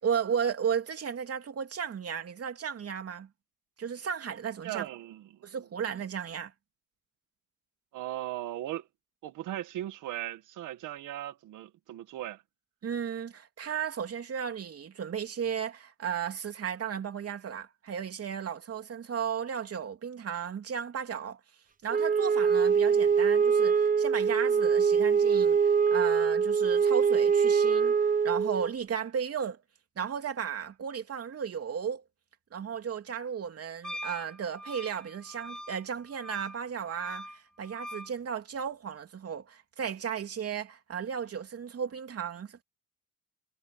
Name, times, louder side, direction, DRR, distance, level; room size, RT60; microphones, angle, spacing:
voice 1, 0.0-3.3 3.8-4.9 5.4-6.5 12.8-21.4 21.8-29.6 30.0-32.0 32.5-42.6, right 7 dB, 50° right, 3.0 m, -34 dB
voice 2, 4.6-5.4 7.9-8.9 9.2-12.4, right 13 dB, 90° right, 1.9 m, -38 dB
Wind instrument woodwind instrument, 21.9-28.7, right 6 dB, 25° right, 1.0 m, -24 dB
Wind instrument woodwind instrument 2, 33.8-38.1, equal, ahead, 1.3 m, -43 dB
cardioid pair, 90°, 30 cm